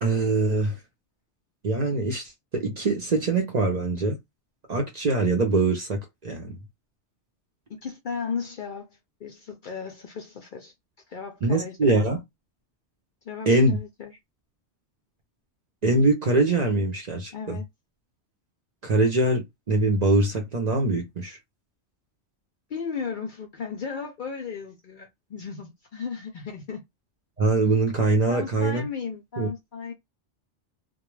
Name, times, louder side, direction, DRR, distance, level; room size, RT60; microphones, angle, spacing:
voice 1, 0.0-0.7 1.6-4.2 4.7-6.5 11.4-12.2 13.5-13.8 15.8-17.6 18.8-21.4 27.4-28.9 29.4-29.5, right 2 dB, 45° right, 0.6 m, -23 dB
voice 2, 7.7-10.7 11.1-12.1 13.2-14.1 17.3-17.7 22.7-26.8 28.3-29.9, left 6 dB, 60° left, 0.5 m, -35 dB
2.2 x 2.1 x 3.1 m
omnidirectional pair, 1.2 m